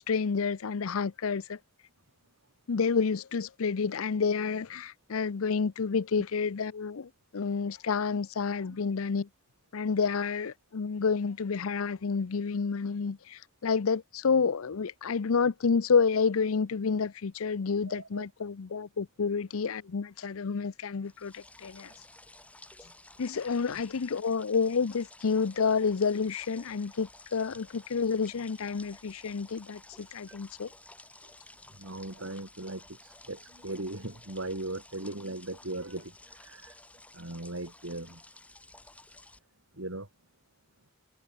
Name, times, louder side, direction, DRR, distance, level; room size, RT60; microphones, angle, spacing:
voice 1, 0.1-1.6 2.7-9.3 9.7-21.9 23.2-30.7, left 5 dB, 85° left, 0.6 m, -29 dB
voice 2, 17.9-18.3 22.8-22.9 23.7-23.8 31.8-36.7 37.1-38.2 39.7-40.1, right 2 dB, 75° right, 3.8 m, -38 dB
sound 1, 21.0-39.4, left 2 dB, 5° left, 4.4 m, -54 dB
head